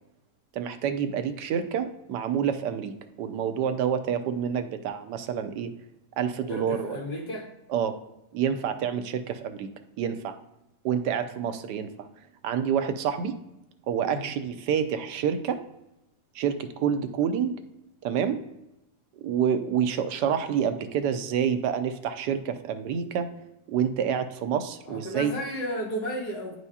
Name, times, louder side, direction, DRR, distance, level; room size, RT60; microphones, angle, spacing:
voice 1, 0.5-5.7 6.2-7.0 7.7-8.0 8.3-9.7 10.0-10.4 10.8-12.1 12.4-13.3 13.9-15.6 16.3-17.5 18.0-18.4 19.2-23.3 23.7-25.3, right 8 dB, 80° right, 9 dB, 1.2 m, -28 dB
voice 2, 6.5-7.5 14.1-14.3 24.9-26.6, equal, 65° left, -2 dB, 2.2 m, -33 dB
9.7 x 4.7 x 2.8 m, 0.90 s
omnidirectional pair, 1.8 m